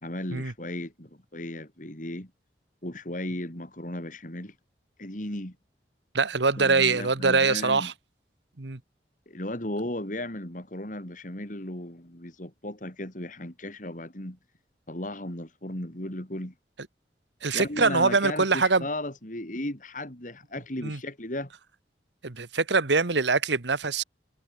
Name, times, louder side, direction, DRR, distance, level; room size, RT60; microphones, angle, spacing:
voice 1, 0.0-2.3 2.8-4.5 5.0-5.6 6.6-7.9 9.3-14.4 14.9-16.5 17.5-21.5, left 1 dB, 50° left, 4.3 m, -35 dB
voice 2, 6.1-7.9 8.6-8.8 17.4-18.9 20.8-21.0 22.2-24.0, right 4 dB, 90° right, 1.5 m, -23 dB
head